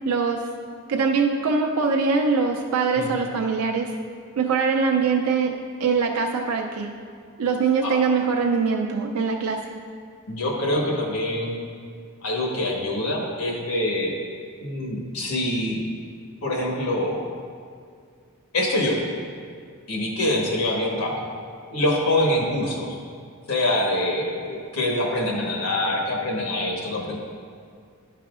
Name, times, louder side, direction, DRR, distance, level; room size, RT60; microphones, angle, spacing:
voice 1, 0.0-0.4 0.9-3.9 4.4-5.5 5.8-6.9 7.4-9.6, right 5 dB, 85° right, 1 dB, 0.5 m, -22 dB
voice 2, 10.3-11.6 12.2-14.1 14.6-15.8 16.4-17.2 18.5-19.1 19.9-21.2 21.7-23.0 23.5-27.2, left 1 dB, 90° left, -1 dB, 1.3 m, -25 dB
11.0 x 5.7 x 2.4 m, 2.2 s
head